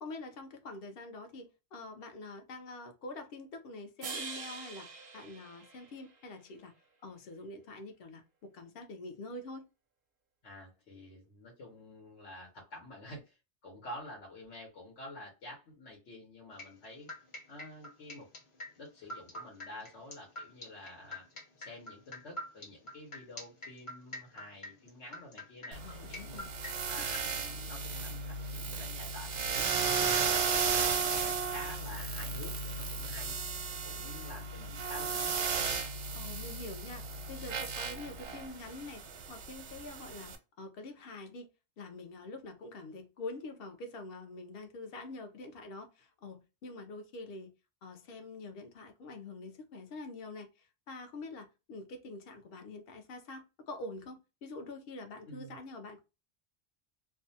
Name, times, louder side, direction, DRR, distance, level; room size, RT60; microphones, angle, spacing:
voice 1, 0.0-4.9 5.1-6.7 7.0-9.7 25.8-26.5 27.0-27.1 36.1-39.0 39.3-41.5 41.8-47.5 47.8-56.0, left 2 dB, 60° left, 0.8 m, -46 dB
sound 1, 4.0-6.4, right 4 dB, 50° right, 0.5 m, -44 dB
voice 2, 10.4-13.4 13.6-17.1 17.5-18.3 18.8-21.2 21.6-26.5 26.9-31.1 31.5-33.4 33.8-35.6 55.3-55.6, left 1 dB, 85° left, 1.2 m, -49 dB
sound 2, 16.6-27.2, left 1 dB, 35° left, 0.5 m, -45 dB
sound 3, 25.7-40.4, right 5 dB, 90° right, 0.9 m, -34 dB
2.6 x 2.2 x 2.6 m
omnidirectional pair, 1.2 m